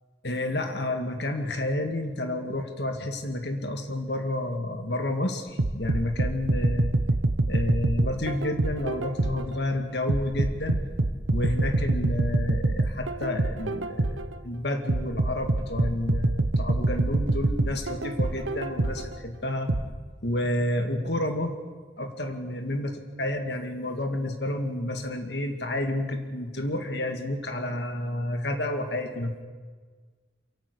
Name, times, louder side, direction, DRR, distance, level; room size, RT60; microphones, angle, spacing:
voice 1, 0.2-7.0 7.5-10.8 11.3-19.7 20.2-21.6 22.0-29.4, left 1 dB, 60° left, 5 dB, 2.0 m, -30 dB
sound 1, 5.6-9.5 10.1-14.3 14.9-19.1 19.7-19.8, right 2 dB, 85° right, 1.0 m, -25 dB
28.5 x 11.5 x 8.3 m, 1.5 s
head